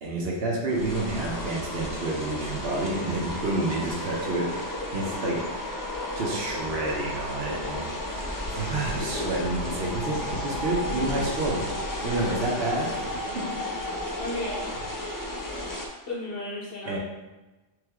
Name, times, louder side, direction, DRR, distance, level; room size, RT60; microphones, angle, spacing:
voice 1, 0.0-4.7 4.9-5.7 6.1-7.9 8.5-11.6 12.0-12.9 13.3-13.4 16.9-17.0, right 2 dB, 60° right, -3 dB, 1.1 m, -29 dB
sound 1, 0.7-15.9, left 1 dB, 30° left, 0.3 m, -33 dB
sound 2, 8.1-8.2 8.5-8.9 9.2-9.9 10.2-10.6 10.9-11.6 12.0-12.3 12.6-13.4 13.7-14.0 14.3-15.0, left 3 dB, 85° left, 1.0 m, -48 dB
voice 2, 14.1-14.7 16.1-17.0, left 1 dB, 55° left, -4 dB, 1.0 m, -33 dB
3.5 x 3.4 x 3.5 m, 1.1 s
omnidirectional pair, 1.2 m